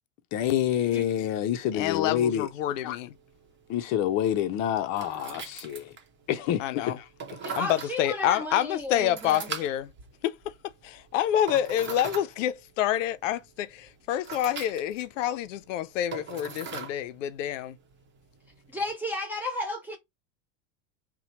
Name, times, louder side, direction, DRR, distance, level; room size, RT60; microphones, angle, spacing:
voice 1, 0.3-2.5 2.8-3.0 3.7-5.8 6.3-7.0, left 10 dB, 50° left, 0.6 m, -27 dB
sound 1, 1.4-18.9, right 6 dB, 30° right, 0.9 m, -44 dB
voice 2, 1.7-3.1 6.6-7.0 7.6-9.9 10.2-10.4 10.8-17.8, left 11 dB, 85° left, 0.5 m, -28 dB
voice 3, 7.4-9.5 18.7-20.0, left 1 dB, 5° right, 0.7 m, -33 dB
2.8 x 2.2 x 4.1 m
supercardioid pair, 100°, 37 cm